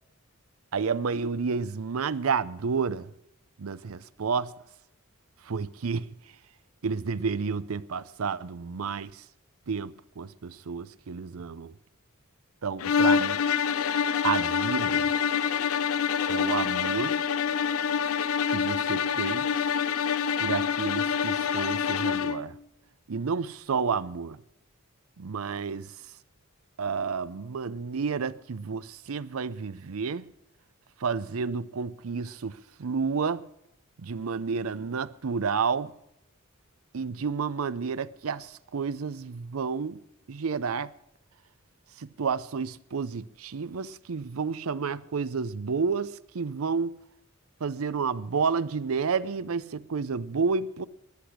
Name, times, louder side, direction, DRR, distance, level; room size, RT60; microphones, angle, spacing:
voice 1, 0.7-3.1 3.6-4.5 5.4-6.1 6.8-9.2 9.7-11.7 12.6-13.4 14.2-15.1 16.3-17.1 18.5-19.5 20.4-22.5 23.1-24.4 25.2-25.9 26.8-30.3 31.0-33.4 34.0-35.9 36.9-40.0 40.3-40.9 42.0-46.9 47.6-50.8, right 5 dB, 90° right, 0.6 m, -30 dB
sound 1, 12.8-22.5, left 7 dB, 85° left, 0.6 m, -26 dB
16.5 x 10.5 x 6.2 m
head